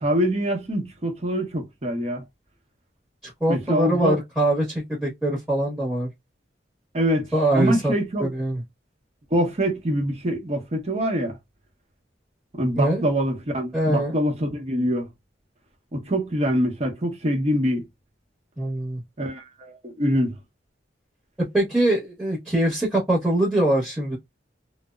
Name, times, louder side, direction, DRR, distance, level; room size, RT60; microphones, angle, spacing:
voice 1, 0.0-2.2 3.5-4.2 6.9-7.2 7.5-8.3 9.3-11.4 12.5-15.1 15.9-17.8 19.2-20.4, equal, 35° right, 0.7 m, -24 dB
voice 2, 3.2-6.1 7.3-7.9 8.2-8.6 12.7-13.0 13.7-14.1 18.6-19.0 21.4-24.2, right 1 dB, 5° right, 0.9 m, -23 dB
2.7 x 2.0 x 2.2 m
head